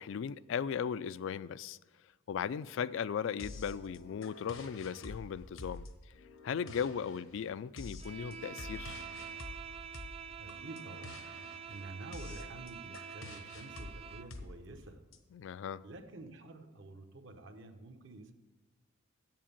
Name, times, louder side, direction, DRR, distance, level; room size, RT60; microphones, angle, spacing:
voice 1, 0.0-1.8 2.3-5.9 6.4-9.1 15.3-15.8, left 7 dB, 65° left, 0.3 m, -37 dB
sound 1, 3.4-15.2, left 2 dB, 85° left, 1.1 m, -48 dB
Bowed string instrument, 8.0-14.4, right 8 dB, 30° right, 0.4 m, -47 dB
voice 2, 10.4-11.3 11.7-15.1 15.8-18.3, right 2 dB, 65° right, 1.0 m, -49 dB
7.9 x 7.5 x 7.2 m
head